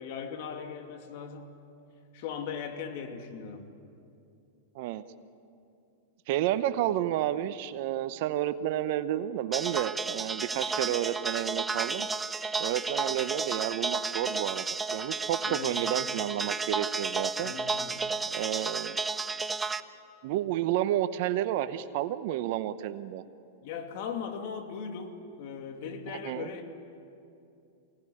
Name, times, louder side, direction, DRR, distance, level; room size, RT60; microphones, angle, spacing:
voice 1, 0.0-1.6 2.1-3.6 15.5-15.8 17.4-18.0 23.6-26.7, left 6 dB, 55° left, 5 dB, 2.6 m, -38 dB
voice 2, 6.3-12.1 12.6-14.7 14.9-17.5 18.2-19.0 20.2-23.2 26.2-26.5, right 12 dB, 55° right, 12 dB, 0.8 m, -31 dB
sound 1, 9.5-19.8, right 4 dB, 15° right, 0.7 m, -32 dB
23.5 x 18.0 x 9.9 m, 2.6 s
hypercardioid pair, 125°, 0 cm